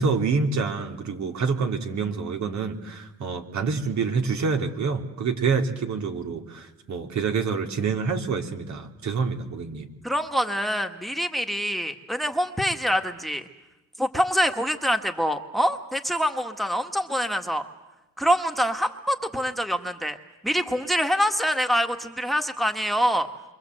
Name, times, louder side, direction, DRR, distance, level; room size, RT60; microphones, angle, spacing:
voice 1, 0.0-9.9, right 5 dB, 65° right, 4 dB, 3.0 m, -27 dB
voice 2, 10.0-13.4 14.0-17.6 18.2-20.2 20.4-23.3, equal, ahead, 7 dB, 1.8 m, -25 dB
28.0 x 24.5 x 7.9 m, 1.0 s
cardioid pair, 90°, 30 cm